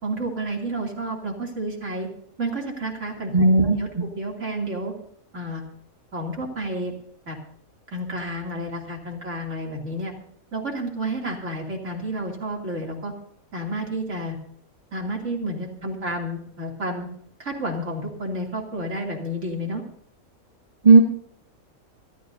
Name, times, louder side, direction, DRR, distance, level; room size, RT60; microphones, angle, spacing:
voice 1, 0.0-2.1 2.4-3.5 3.8-4.9 5.3-5.6 6.1-7.0 7.3-7.4 7.9-10.1 10.5-13.1 13.5-14.4 14.9-17.1 17.4-19.8, right 1 dB, 55° right, 0 dB, 3.1 m, -30 dB
voice 2, 3.3-3.8 20.8-21.0, right 3 dB, 25° right, 1 dB, 1.5 m, -13 dB
25.5 x 13.0 x 2.7 m, 0.66 s
omnidirectional pair, 1.5 m